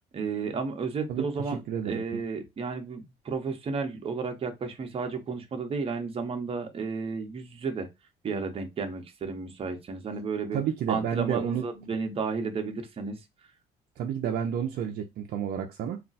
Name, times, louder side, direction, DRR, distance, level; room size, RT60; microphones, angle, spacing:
voice 1, 0.1-7.9 8.2-10.6 10.9-13.2, right 4 dB, 35° right, 0.8 m, -32 dB
voice 2, 1.1-2.0 10.5-11.6 14.0-16.0, right 8 dB, 65° right, 0.5 m, -30 dB
2.4 x 2.2 x 3.9 m
cardioid pair, 110°, 17 cm